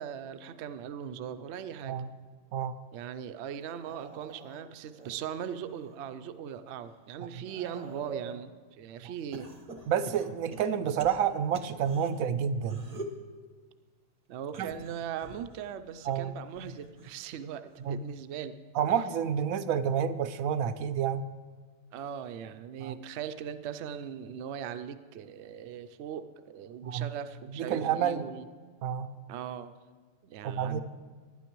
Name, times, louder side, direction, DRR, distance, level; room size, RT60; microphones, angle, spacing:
voice 1, 0.0-2.0 2.9-9.5 14.3-18.6 18.9-19.0 21.9-28.5 29.3-29.7 30.2-30.8, right 8 dB, 65° right, 10 dB, 0.8 m, -39 dB
sound 1, 3.7-6.0 6.5-8.5 9.3-12.1 12.6-13.2 14.4-17.3 17.7-18.1 19.3-19.4, right 3 dB, 35° right, 0.9 m, -46 dB
voice 2, 9.9-12.8 14.6-14.7 16.1-16.3 17.9-18.0 18.7-21.2 22.8-22.9 26.8-27.1 27.6-28.2 28.8-29.1 30.4-30.8, right 8 dB, 85° right, 12 dB, 1.0 m, -29 dB
18.5 x 10.0 x 3.0 m, 1.5 s
omnidirectional pair, 1.4 m